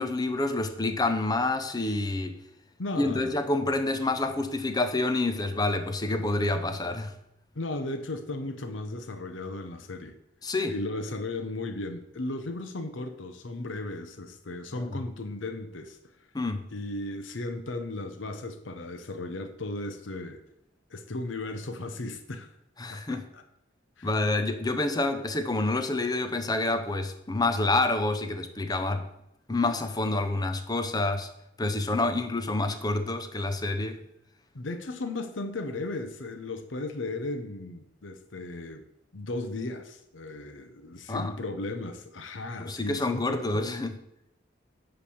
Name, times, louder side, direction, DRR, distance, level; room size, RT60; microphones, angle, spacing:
voice 1, 0.0-2.4 3.0-7.1 10.4-10.8 14.8-15.0 16.3-16.6 22.8-23.2 24.0-29.1 29.5-31.3 31.6-34.0 41.1-41.3 42.7-44.0, left 2 dB, 20° left, 0.7 m, -28 dB
voice 2, 2.8-3.3 7.5-10.1 10.7-16.0 16.7-20.4 20.9-22.5 22.9-23.4 24.0-24.1 34.5-38.8 39.1-43.7, left 2 dB, 75° left, 0.8 m, -36 dB
10.0 x 3.4 x 7.1 m
head